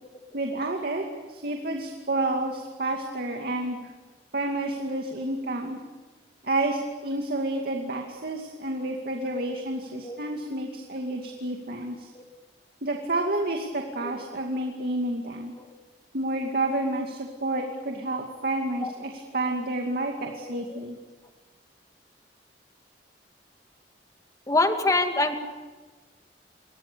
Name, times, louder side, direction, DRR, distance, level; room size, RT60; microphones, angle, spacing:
voice 1, 0.3-3.8 4.3-5.8 6.4-12.1 12.8-15.5 16.1-21.0, right 2 dB, 60° right, 2 dB, 2.5 m, -30 dB
voice 2, 20.4-20.8 24.5-25.3, left 2 dB, 20° left, 5 dB, 2.2 m, -26 dB
29.0 x 24.0 x 7.0 m, 1.3 s
head